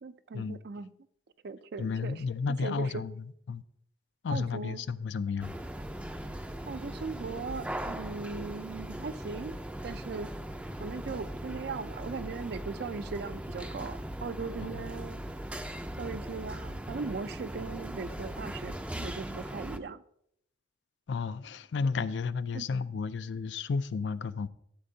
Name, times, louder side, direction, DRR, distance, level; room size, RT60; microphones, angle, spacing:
voice 1, 0.0-0.9 1.4-2.2 2.6-3.0 4.3-4.8 6.6-9.6 9.8-10.3 10.8-15.2 16.0-20.0 22.0-22.1 22.5-22.7, right 4 dB, 65° right, 0.4 m, -39 dB
voice 2, 1.8-3.1 3.5-3.6 4.2-5.5 21.1-24.5, left 5 dB, 85° left, 0.4 m, -32 dB
sound 1, 5.4-19.8, right 1 dB, 5° right, 0.4 m, -39 dB
13.0 x 7.6 x 2.7 m
head